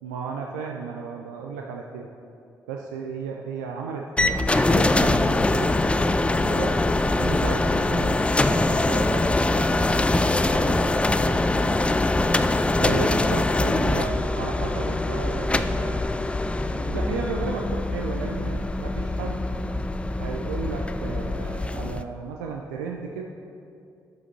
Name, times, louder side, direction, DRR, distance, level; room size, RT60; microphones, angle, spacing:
voice 1, 0.0-2.1 2.7-5.7 6.3-8.2 12.8-16.1 16.6-19.5 20.2-23.2, right 5 dB, 85° right, 0 dB, 0.4 m, -34 dB
sound 1, 4.2-22.0, left 2 dB, 15° left, 0.4 m, -23 dB
voice 2, 8.2-11.0 11.3-11.6, right 2 dB, 50° right, -1 dB, 1.7 m, -35 dB
11.0 x 7.5 x 2.8 m, 2.5 s
hypercardioid pair, 45°, 9 cm